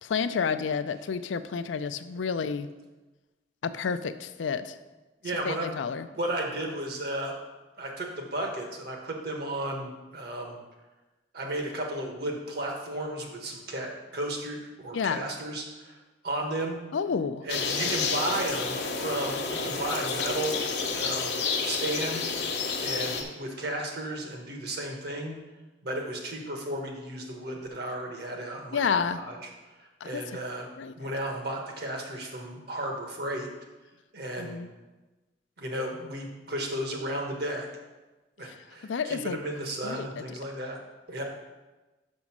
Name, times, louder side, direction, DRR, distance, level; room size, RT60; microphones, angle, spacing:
voice 1, 0.0-2.7 3.6-4.7 5.4-6.1 14.9-15.2 16.9-17.4 28.7-29.2 30.0-30.2 30.8-30.9 34.4-34.7 38.9-39.4 39.8-40.1, left 6 dB, 85° left, 11 dB, 0.4 m, -30 dB
voice 2, 5.2-7.4 7.8-10.6 11.3-16.0 16.2-16.8 17.4-20.6 20.9-21.3 21.6-22.3 22.8-25.3 25.8-29.5 30.0-30.7 30.9-33.5 34.1-34.6 35.6-37.7 38.4-40.8 41.1-41.2, right 1 dB, 55° right, 2 dB, 1.3 m, -34 dB
sound 1, 17.5-23.2, left 4 dB, 60° left, 1.0 m, -30 dB
6.2 x 5.3 x 5.9 m, 1.2 s
head